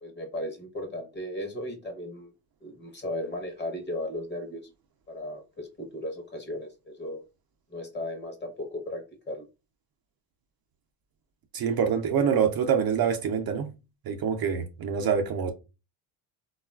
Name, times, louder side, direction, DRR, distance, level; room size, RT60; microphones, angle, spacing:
voice 1, 0.0-2.3 2.6-4.6 5.1-7.2 7.7-9.4, left 1 dB, 20° left, 0.9 m, -36 dB
voice 2, 11.5-13.7 14.1-15.5, right 7 dB, 50° right, 0.6 m, -25 dB
3.5 x 2.3 x 2.3 m
cardioid pair, 85°, 48 cm